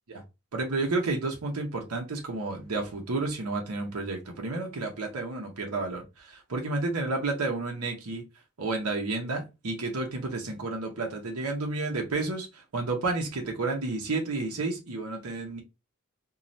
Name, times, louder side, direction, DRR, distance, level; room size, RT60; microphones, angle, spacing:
voice 1, 0.5-8.2 8.6-15.6, right 3 dB, 85° right, 0.8 m, -31 dB
2.6 x 2.3 x 3.1 m
head